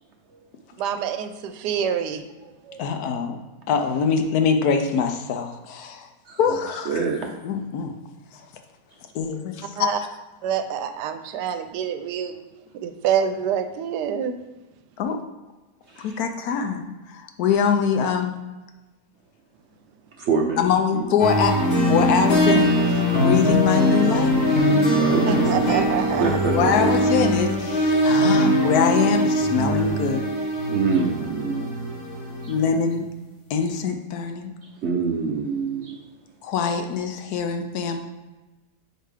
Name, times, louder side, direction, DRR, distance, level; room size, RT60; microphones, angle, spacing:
voice 1, 0.8-2.3 9.8-10.0 10.4-12.4 12.8-14.4 25.3-26.4, right 8 dB, 90° right, 9 dB, 1.2 m, -26 dB
voice 2, 2.8-3.4 3.7-6.1 6.4-7.9 9.1-10.1 15.0-15.2 16.0-18.3 20.6-21.5 21.9-22.7 23.2-24.4 26.5-30.2 32.5-33.1 33.5-34.5 36.4-38.0, left 6 dB, 70° left, 6 dB, 1.1 m, -23 dB
voice 3, 6.9-7.3 15.9-16.1 20.2-20.7 20.9-21.1 25.0-25.7 26.2-26.9 30.7-31.7 32.4-32.5 34.8-36.0, right 5 dB, 65° right, 1 dB, 0.7 m, -25 dB
sound 1, 21.2-32.7, equal, 40° left, 1.7 m, -21 dB
5.0 x 4.4 x 4.9 m, 1.1 s
omnidirectional pair, 1.7 m